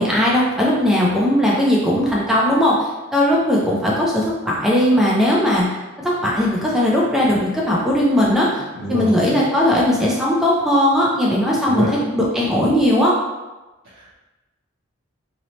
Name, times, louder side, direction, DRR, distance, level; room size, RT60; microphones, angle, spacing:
voice 1, 0.0-5.6 6.0-8.6 8.9-11.9 12.1-13.2, left 1 dB, ahead, -5 dB, 0.3 m, -18 dB
voice 2, 8.8-9.4 11.7-11.9 14.0-14.1, right 1 dB, 75° right, -9 dB, 0.6 m, -26 dB
2.7 x 2.0 x 2.9 m, 1.1 s
head